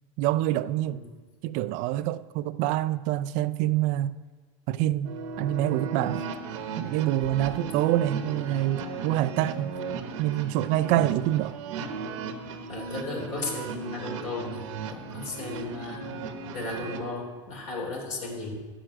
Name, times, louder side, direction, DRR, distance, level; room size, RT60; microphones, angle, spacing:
voice 1, 0.2-1.0 1.4-4.1 4.7-6.3 6.8-11.6, right 14 dB, 55° right, 0.5 m, -26 dB
sound 1, 5.0-17.0, right 4 dB, 80° right, 1.2 m, -36 dB
voice 2, 12.7-16.3 16.5-18.5, left 3 dB, 55° left, 3.6 m, -35 dB
12.5 x 5.0 x 8.8 m
supercardioid pair, 105°, 16 cm